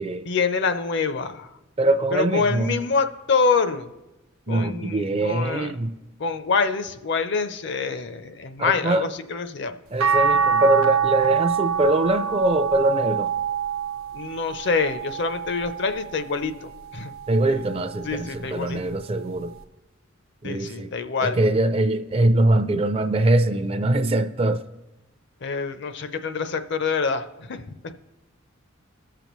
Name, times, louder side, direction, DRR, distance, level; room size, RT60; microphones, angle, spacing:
voice 1, 0.2-1.5 2.1-3.9 4.5-5.7 6.2-9.8 14.1-17.1 18.0-18.8 20.4-21.4 25.4-27.6, left 5 dB, 60° left, 0.6 m, -26 dB
voice 2, 1.8-2.8 4.5-5.9 8.6-9.1 9.9-13.3 17.3-19.5 20.4-20.9 21.2-24.6, right 2 dB, 30° right, 0.4 m, -22 dB
sound 1, 10.0-16.3 16.9-18.2 19.6-19.7, right 6 dB, 85° right, 0.7 m, -25 dB
19.5 x 6.8 x 3.0 m
head